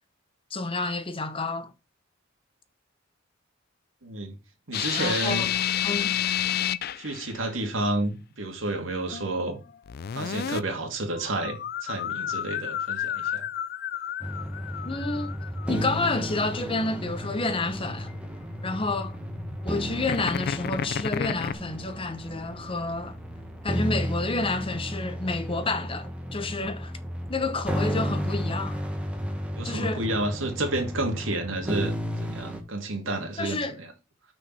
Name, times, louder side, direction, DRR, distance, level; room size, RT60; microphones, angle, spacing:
voice 1, 0.5-1.7 4.9-5.5 5.8-6.2 14.8-15.4 15.7-18.1 18.6-19.2 19.6-23.2 23.6-26.9 27.3-28.8 29.6-30.0 33.4-33.8, left 3 dB, 30° left, 0.9 m, -29 dB
voice 2, 4.0-4.4 4.7-5.5 7.0-9.6 10.1-13.5 29.6-31.9 32.2-33.9, right 2 dB, 80° right, 2.3 m, -30 dB
sound 1, 4.7-7.4 9.1-9.5 9.9-10.6 11.1-16.9 20.0-21.5, left 9 dB, 50° left, 0.4 m, -31 dB
sound 2, 14.2-32.6, equal, 5° right, 1.2 m, -33 dB
6.1 x 5.0 x 6.1 m
head